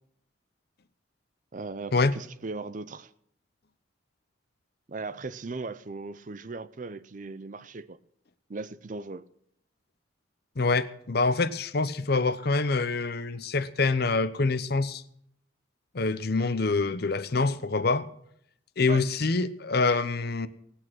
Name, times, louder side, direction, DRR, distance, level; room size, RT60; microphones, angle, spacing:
voice 1, 1.5-3.1 4.9-8.0 8.5-9.3 18.9-19.0, right 3 dB, 40° right, 0.5 m, -38 dB
voice 2, 10.6-15.0 15.9-18.1 18.8-20.5, left 3 dB, 50° left, 0.8 m, -26 dB
18.0 x 8.7 x 6.2 m
head